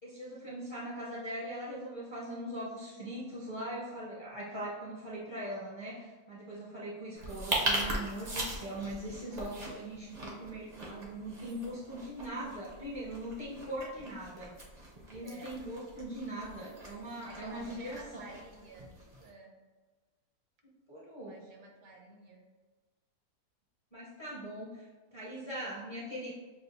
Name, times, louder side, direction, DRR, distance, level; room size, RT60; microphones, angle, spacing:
voice 1, 0.0-14.5 15.1-18.3 20.9-21.4 23.9-24.9 25.1-26.3, right 1 dB, 25° left, -7 dB, 0.6 m, -41 dB
sound 1, 7.2-19.3, right 1 dB, 45° right, 0.5 m, -40 dB
voice 2, 15.2-15.6 17.2-18.9 19.2-19.6 21.2-22.4, right 2 dB, 70° right, 1 dB, 1.0 m, -51 dB
6.7 x 2.4 x 2.7 m, 1.3 s
omnidirectional pair, 1.6 m